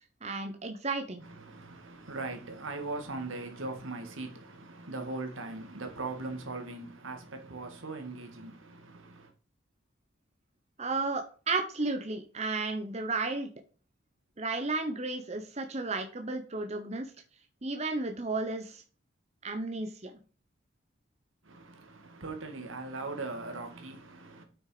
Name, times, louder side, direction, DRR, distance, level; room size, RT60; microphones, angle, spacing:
voice 1, 0.0-1.2 10.8-13.5 14.4-17.1 17.6-18.8 19.4-20.2, right 3 dB, 35° right, 1.0 m, -33 dB
voice 2, 1.2-9.3 21.4-24.4, right 3 dB, 80° right, 2.2 m, -40 dB
8.9 x 6.2 x 5.0 m
head